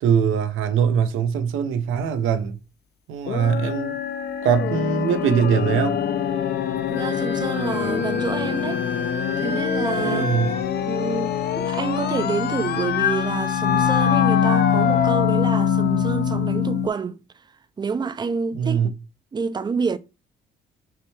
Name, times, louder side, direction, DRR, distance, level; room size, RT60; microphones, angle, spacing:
voice 1, 0.0-2.6 3.1-4.0 4.4-6.0 10.0-10.5 18.5-18.9, right 7 dB, 90° right, 0.7 m, -22 dB
sound 1, 3.3-16.9, left 8 dB, 55° left, 0.4 m, -23 dB
Wind instrument woodwind instrument, 6.9-10.6, left 1 dB, 70° left, 1.0 m, -33 dB
voice 2, 6.9-8.8 9.4-10.3 10.8-17.4 17.8-18.9 19.3-20.0, right 5 dB, 20° right, 0.3 m, -28 dB
5.6 x 2.3 x 3.1 m
cardioid pair, 90°, 20 cm